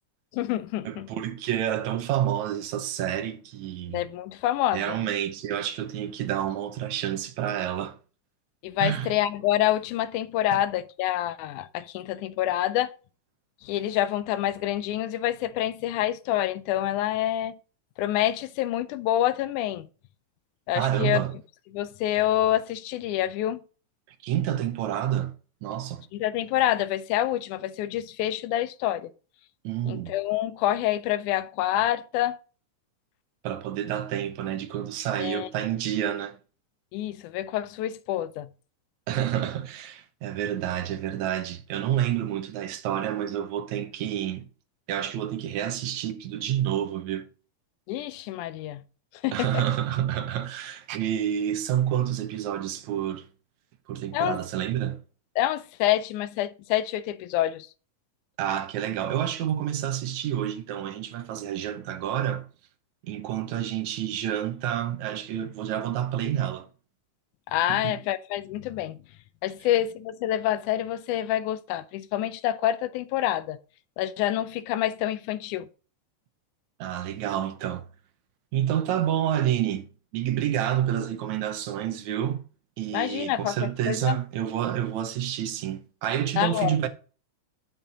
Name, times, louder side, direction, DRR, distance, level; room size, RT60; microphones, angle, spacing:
voice 1, 0.3-1.1 3.9-5.0 8.6-12.9 13.6-17.6 18.0-19.9 20.7-21.2 21.7-23.6 26.1-29.1 29.9-32.4 35.2-35.5 36.9-38.5 47.9-48.8 49.2-49.6 54.1-54.4 55.4-57.7 67.5-69.0 69.4-73.6 74.0-75.7 82.9-84.2 86.4-86.8, left 13 dB, 85° left, 2.0 m, -27 dB
voice 2, 0.8-4.0 4.7-8.0 8.8-9.1 10.5-10.6 20.8-21.4 24.2-25.4 25.6-26.0 29.6-30.1 33.4-36.4 39.1-44.5 44.9-47.3 49.3-53.3 53.9-55.0 58.4-62.5 63.0-66.7 67.7-68.0 76.8-77.8 78.5-82.5 82.8-86.9, right 11 dB, 75° right, 2.1 m, -29 dB
9.1 x 5.9 x 4.0 m
omnidirectional pair, 3.5 m